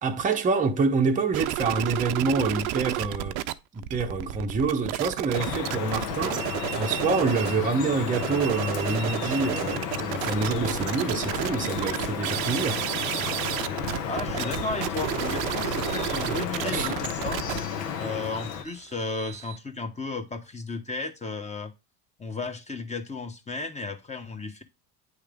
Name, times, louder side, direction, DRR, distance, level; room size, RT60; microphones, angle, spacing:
voice 1, 0.0-3.4 3.7-6.5 6.7-12.8 16.7-16.9, right 4 dB, 15° right, 0.8 m, -27 dB
sound 1, 1.3-3.5 3.8-7.6 8.0-19.6, right 14 dB, 60° right, 0.6 m, -31 dB
Drip, 5.3-18.6, left 7 dB, 75° left, 1.2 m, -32 dB
voice 2, 13.8-17.4 18.0-21.7 22.2-24.6, left 3 dB, 15° left, 1.1 m, -34 dB
9.4 x 3.3 x 3.5 m
hypercardioid pair, 75°, 49 cm